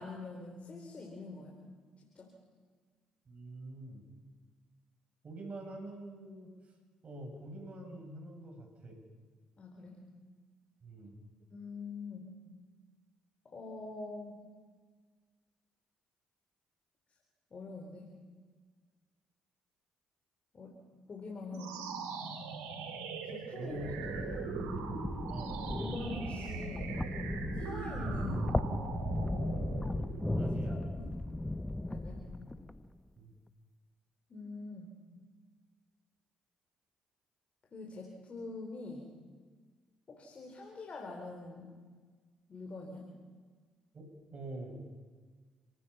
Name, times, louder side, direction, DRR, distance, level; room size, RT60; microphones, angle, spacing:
voice 1, 0.0-1.6 2.0-2.3 9.6-10.1 11.5-12.4 13.4-14.4 17.5-18.2 20.5-20.8 21.1-21.9 23.2-23.8 24.1-24.5 25.8-27.1 27.5-28.7 30.4-31.1 31.9-32.4 34.3-35.0 37.7-39.1 40.1-41.8 42.5-43.1, left 3 dB, 45° left, 1 dB, 4.3 m, -45 dB
voice 2, 3.3-4.0 5.2-6.5 7.0-9.0 10.8-11.2 23.5-24.2 25.3-25.6 30.3-30.8 33.2-33.3 43.9-44.8, right 1 dB, 50° right, 2 dB, 7.7 m, -45 dB
sound 1, 21.5-31.0, right 5 dB, 85° right, 2.8 m, -41 dB
sound 2, 23.6-32.9, left 1 dB, 15° left, 1.0 m, -36 dB
29.5 x 18.0 x 5.7 m, 1.5 s
hypercardioid pair, 50°, 3 cm